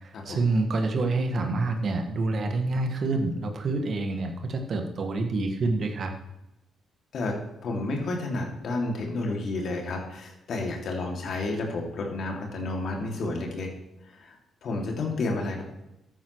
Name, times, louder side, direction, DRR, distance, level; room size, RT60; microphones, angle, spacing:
voice 1, 0.0-6.1, right 3 dB, 55° right, 5 dB, 1.7 m, -27 dB
voice 2, 7.1-13.7 14.0-14.4 14.6-15.6, left 2 dB, 60° left, 1 dB, 2.6 m, -31 dB
14.5 x 10.5 x 3.2 m, 0.90 s
hypercardioid pair, 45°, 0 cm